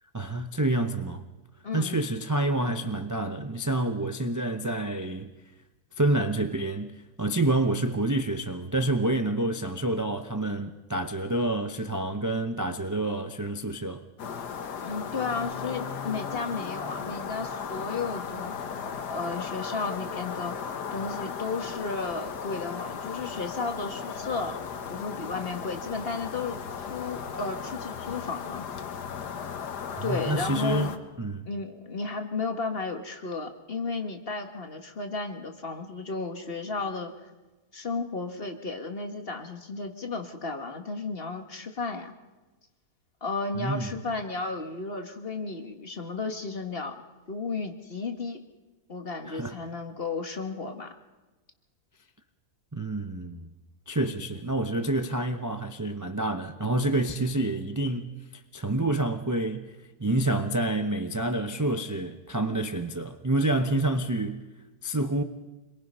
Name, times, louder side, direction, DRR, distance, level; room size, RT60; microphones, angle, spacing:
voice 1, 0.1-1.2 1.7-5.3 6.0-14.0 30.0-31.5 43.5-43.9 49.3-49.6 52.7-53.5 53.9-58.1 58.5-59.7 60.0-64.4 64.8-65.2, right 2 dB, 25° right, 0.4 m, -28 dB
voice 2, 1.6-2.0 14.8-18.5 19.1-24.6 24.9-26.6 26.9-28.6 30.0-30.9 31.4-37.3 37.7-42.1 43.2-47.0 47.3-48.4 48.9-50.9, left 4 dB, 35° left, 1.7 m, -33 dB
sound 1, 14.2-31.0, left 6 dB, 80° left, 1.7 m, -36 dB
26.0 x 22.5 x 5.6 m
omnidirectional pair, 1.7 m